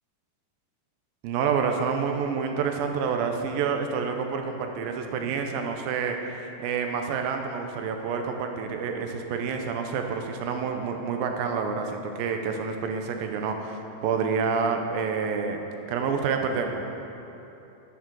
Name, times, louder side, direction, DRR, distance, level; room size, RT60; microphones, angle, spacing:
voice 1, 1.2-15.6 15.9-16.8, right 5 dB, 85° right, 4 dB, 2.5 m, -28 dB
11.5 x 9.0 x 6.3 m, 2.9 s
omnidirectional pair, 4.2 m